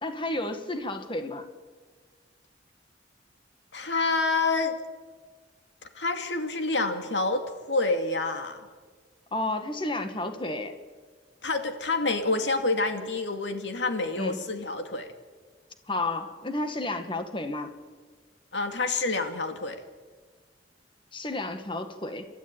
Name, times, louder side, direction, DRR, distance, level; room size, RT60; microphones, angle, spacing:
voice 1, 0.0-1.5 9.3-10.7 14.1-14.4 15.9-17.7 21.1-22.3, left 2 dB, 30° left, 7 dB, 1.9 m, -31 dB
voice 2, 3.7-4.8 5.9-8.7 11.4-15.1 18.5-19.8, left 3 dB, 75° left, 6 dB, 2.4 m, -28 dB
28.5 x 13.0 x 9.0 m, 1.5 s
head